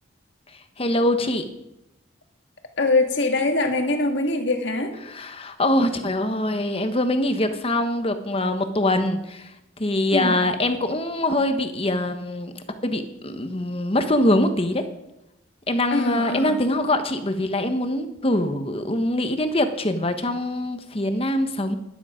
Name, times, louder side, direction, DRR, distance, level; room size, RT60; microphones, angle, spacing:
voice 1, 0.8-1.4 5.0-9.5 9.8-14.8 15.7-21.8, left 1 dB, 30° left, 8 dB, 1.1 m, -23 dB
voice 2, 2.8-5.0 10.1-10.4 15.9-16.6, left 2 dB, 60° left, 4 dB, 1.7 m, -23 dB
13.0 x 11.5 x 5.0 m, 0.87 s
head